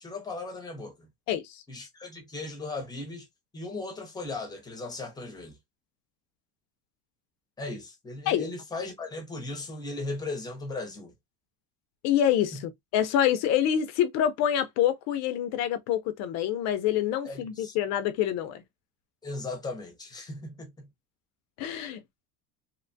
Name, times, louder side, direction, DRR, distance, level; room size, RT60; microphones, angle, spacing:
voice 1, 0.0-1.1 1.7-3.3 3.5-5.6 7.6-11.1 12.5-12.6 17.2-17.7 19.2-20.9, left 2 dB, 10° left, 0.6 m, -37 dB
voice 2, 1.3-1.6 8.3-8.5 12.0-18.6 21.6-22.0, left 10 dB, 50° left, 0.4 m, -26 dB
2.8 x 2.1 x 2.5 m
cardioid pair, 160°, 35 cm